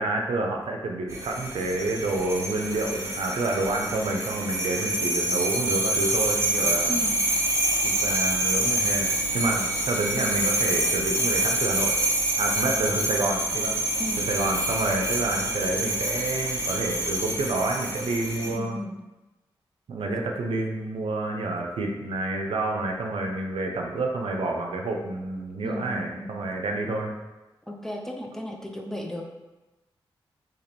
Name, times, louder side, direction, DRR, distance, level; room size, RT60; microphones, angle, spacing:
voice 1, 0.0-6.9 7.8-12.0 12.4-13.8 14.3-18.8 19.9-27.2, right 2 dB, 80° right, 2 dB, 0.5 m, -28 dB
sound 1, 1.1-18.5, right 1 dB, 30° right, 1.0 m, -27 dB
voice 2, 6.9-7.3 14.0-14.3 18.4-18.9 25.6-26.4 27.7-29.2, equal, 5° left, 1 dB, 0.6 m, -35 dB
2.9 x 2.9 x 4.2 m, 1.1 s
cardioid pair, 50°, 9 cm